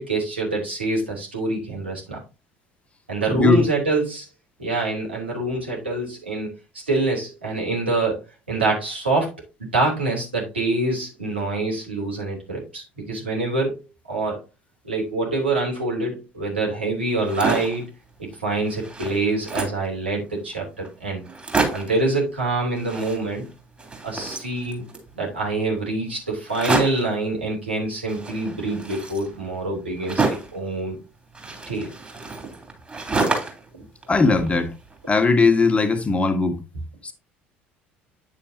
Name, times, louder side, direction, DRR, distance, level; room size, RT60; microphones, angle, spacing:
voice 1, 0.0-2.2 3.1-4.3 4.6-8.2 8.5-9.3 9.7-13.8 14.1-14.4 14.8-17.8 18.2-21.2 21.7-23.4 24.0-24.8 25.1-31.0 31.7-31.9, right 2 dB, 90° right, 2.9 m, -25 dB
voice 2, 3.3-3.6 34.1-34.7 35.1-36.6 37.0-37.1, left 4 dB, 20° left, 1.5 m, -18 dB
sound 1, 17.1-17.8 18.3-18.4 18.6-19.9 20.5-20.6 20.8-20.9 21.2-22.0 22.7-23.5 23.8-25.1 26.5-27.1 28.1-30.6 31.3-33.7 34.0-34.9, right 3 dB, 20° right, 3.2 m, -28 dB
9.0 x 7.1 x 2.7 m
figure-of-eight pair, 60°, 6 cm